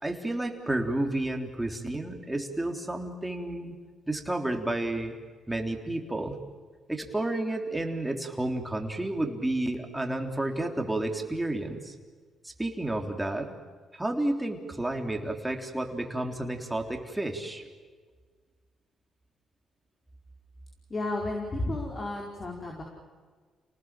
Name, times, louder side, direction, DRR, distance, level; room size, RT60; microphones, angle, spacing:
voice 1, 0.0-3.8 4.1-5.2 5.5-6.4 6.9-11.9 12.4-13.5 13.9-17.6, right 1 dB, 10° right, 3 dB, 3.6 m, -31 dB
voice 2, 20.9-22.8, left 2 dB, 35° left, 0 dB, 4.8 m, -32 dB
29.5 x 19.0 x 7.5 m, 1.5 s
cardioid pair, 90°, 0 cm